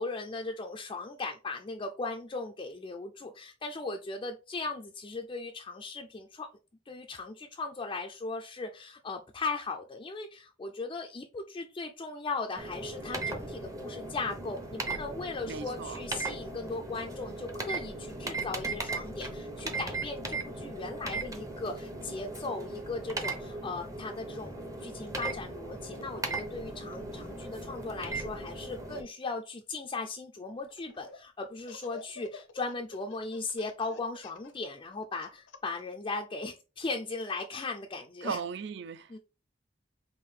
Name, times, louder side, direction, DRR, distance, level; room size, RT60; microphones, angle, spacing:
voice 1, 0.0-6.5 6.9-38.4 39.1-39.2, left 3 dB, 25° left, 0.4 m, -38 dB
sound 1, 12.6-29.0, right 2 dB, 20° right, 0.6 m, -38 dB
voice 2, 15.5-16.0 38.2-39.1, right 6 dB, 65° right, 0.4 m, -37 dB
Laughter, 30.6-31.2 31.6-35.8, left 5 dB, 90° left, 0.8 m, -49 dB
5.5 x 2.6 x 3.2 m
head